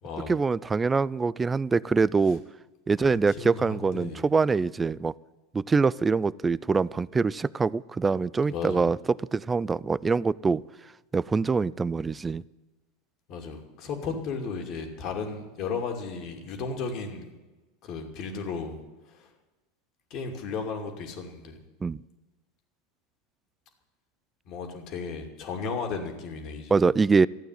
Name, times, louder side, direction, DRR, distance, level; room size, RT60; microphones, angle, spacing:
voice 1, 0.3-2.4 2.9-5.1 5.5-10.6 11.1-12.4 21.8-22.0 26.7-27.3, right 4 dB, 20° right, 21 dB, 0.4 m, -24 dB
voice 2, 3.4-4.2 8.5-8.8 13.3-17.3 17.8-18.8 20.1-21.6 24.5-26.7, left 5 dB, 50° left, 5 dB, 2.7 m, -34 dB
14.0 x 8.9 x 9.7 m, 1.2 s
hypercardioid pair, 90°, 0 cm